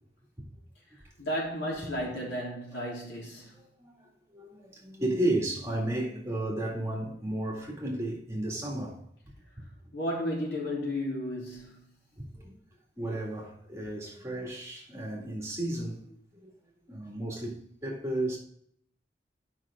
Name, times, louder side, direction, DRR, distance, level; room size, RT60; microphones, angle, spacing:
voice 1, 1.2-3.6 9.9-11.8, equal, 70° left, 3.4 m, -33 dB
voice 2, 3.5-9.0 9.6-9.7 12.2-12.6 13.0-16.5 16.9-18.4, right 1 dB, 15° right, 2.1 m, -33 dB
10.5 x 5.9 x 3.6 m
head